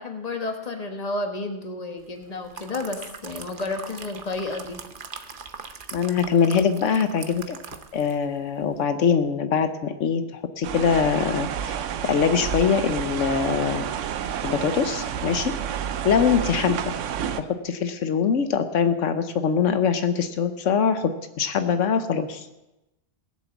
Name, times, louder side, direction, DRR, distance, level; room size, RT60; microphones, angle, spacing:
voice 1, 0.0-4.8, left 2 dB, 35° left, 4 dB, 1.5 m, -31 dB
sound 1, 2.2-8.3 8.6-8.8, right 5 dB, 50° right, 1.0 m, -41 dB
voice 2, 5.9-7.6 7.9-13.8 14.4-15.5 16.0-16.9 17.4-21.1 21.4-22.5, left 6 dB, 90° left, 9 dB, 1.2 m, -23 dB
sound 2, 10.6-17.4, right 8 dB, 85° right, 1.1 m, -29 dB
16.5 x 7.6 x 7.1 m, 0.95 s
omnidirectional pair, 1.2 m